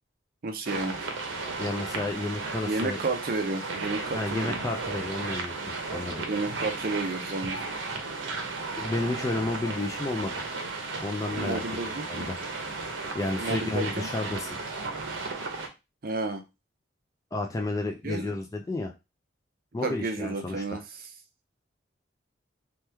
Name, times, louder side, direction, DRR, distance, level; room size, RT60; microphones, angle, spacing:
voice 1, 0.4-1.0 2.7-4.6 6.3-7.6 11.3-12.3 13.4-14.1 16.0-16.4 18.0-18.3 19.8-20.8, right 3 dB, 50° right, 5 dB, 0.5 m, -31 dB
sound 1, 0.7-15.7, right 3 dB, 85° right, 0.7 m, -34 dB
voice 2, 1.6-3.0 4.1-5.5 5.9-6.2 8.8-10.3 11.0-12.4 13.1-14.5 17.3-18.9 19.7-20.8, left 2 dB, 15° left, 2 dB, 0.3 m, -31 dB
2.9 x 2.2 x 3.2 m, 0.25 s
head